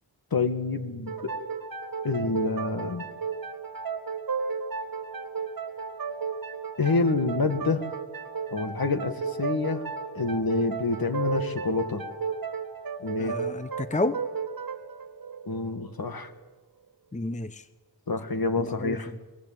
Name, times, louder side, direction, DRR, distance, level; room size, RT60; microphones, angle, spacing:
voice 1, 0.3-1.3 2.0-3.1 6.8-7.8 8.5-9.8 10.1-12.0 13.0-13.4 15.5-16.3 18.1-19.1, left 3 dB, 55° left, 9 dB, 2.0 m, -27 dB
sound 1, 1.1-16.4, right 5 dB, 50° right, 1.8 m, -34 dB
voice 2, 13.2-14.2 17.1-17.7 18.6-19.2, left 2 dB, 15° left, 13 dB, 0.8 m, -31 dB
24.0 x 19.5 x 7.6 m, 1.3 s
wide cardioid pair, 70°, 42 cm